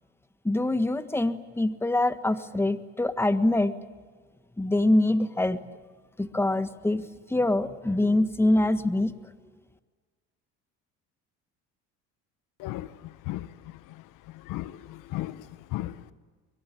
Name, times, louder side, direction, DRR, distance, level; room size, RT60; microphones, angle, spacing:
voice 1, 0.4-3.7 4.6-5.6 6.2-7.0 7.3-9.1, left 1 dB, 5° left, 10 dB, 1.6 m, -24 dB
voice 2, 12.6-16.1, left 16 dB, 70° left, 14 dB, 1.1 m, -37 dB
24.5 x 22.0 x 8.9 m, 1.5 s
supercardioid pair, 85°, 33 cm